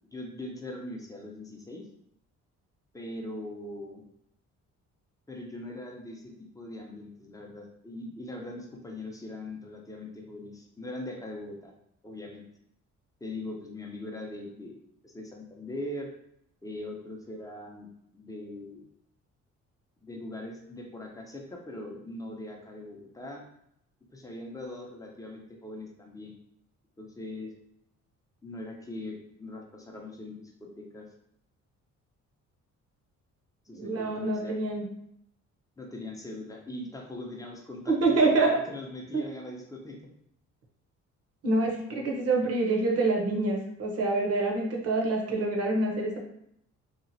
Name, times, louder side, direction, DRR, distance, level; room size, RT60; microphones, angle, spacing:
voice 1, 0.1-1.8 2.9-4.0 5.3-11.7 12.0-12.4 13.2-14.8 15.0-16.1 16.6-18.9 20.0-23.4 24.1-26.3 27.0-27.5 28.4-31.1 33.7-34.6 35.8-40.0 41.9-42.0, left 1 dB, 10° left, 0 dB, 0.6 m, -41 dB
voice 2, 33.7-34.8 37.9-38.5 39.1-39.2 41.4-46.2, right 2 dB, 50° right, -1 dB, 0.9 m, -26 dB
2.9 x 2.4 x 2.6 m, 0.75 s
cardioid pair, 90°, 30 cm